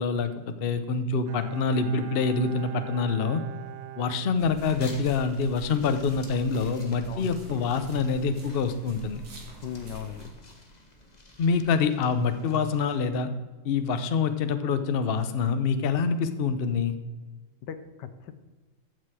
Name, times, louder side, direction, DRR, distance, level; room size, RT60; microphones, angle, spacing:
voice 1, 0.0-3.4 4.0-9.2 11.4-13.3 13.6-17.0, left 5 dB, 55° left, 9 dB, 0.6 m, -26 dB
Bowed string instrument, 1.3-5.0 5.3-5.4, right 13 dB, 80° right, 1.4 m, -41 dB
sound 1, 4.3-10.3, equal, 60° right, 2.4 m, -47 dB
sound 2, 4.6-13.0, left 2 dB, 25° left, 1.2 m, -51 dB
voice 2, 9.6-10.2 17.7-18.3, left 8 dB, 70° left, 11 dB, 1.4 m, -38 dB
15.0 x 6.3 x 4.8 m, 1.3 s
omnidirectional pair, 2.0 m